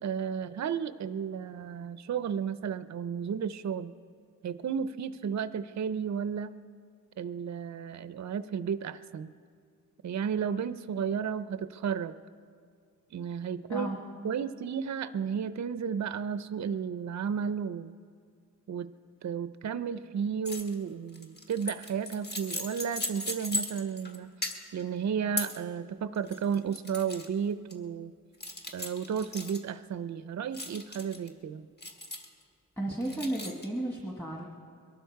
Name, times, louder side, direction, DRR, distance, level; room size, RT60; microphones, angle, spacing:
voice 1, 0.0-3.9 4.4-6.5 7.2-9.3 10.0-12.2 13.1-14.0 14.2-17.9 18.7-18.9 19.2-24.3 24.7-28.1 28.7-31.6, right 7 dB, 55° right, 13 dB, 0.5 m, -33 dB
sound 1, 20.5-20.7 21.1-24.2 24.4-24.8 25.4-25.6 26.1-27.3 27.7-27.8 28.4-29.6 30.5-31.3 31.8-32.4 33.0-33.7, left 2 dB, 30° left, 1.4 m, -37 dB
voice 2, 32.8-34.4, right 1 dB, 5° left, -1 dB, 1.6 m, -33 dB
22.5 x 12.5 x 4.6 m, 2.1 s
wide cardioid pair, 105°, 34 cm